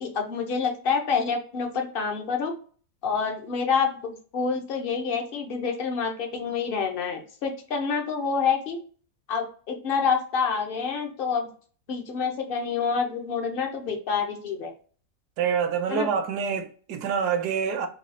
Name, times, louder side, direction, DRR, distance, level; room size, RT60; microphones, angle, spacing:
voice 1, 0.0-2.5 3.0-8.8 9.3-11.5 11.9-14.7 15.9-16.1, left 5 dB, 50° left, 0.6 m, -27 dB
voice 2, 15.4-17.9, right 7 dB, 75° right, 1.2 m, -26 dB
4.0 x 2.3 x 4.1 m
omnidirectional pair, 1.8 m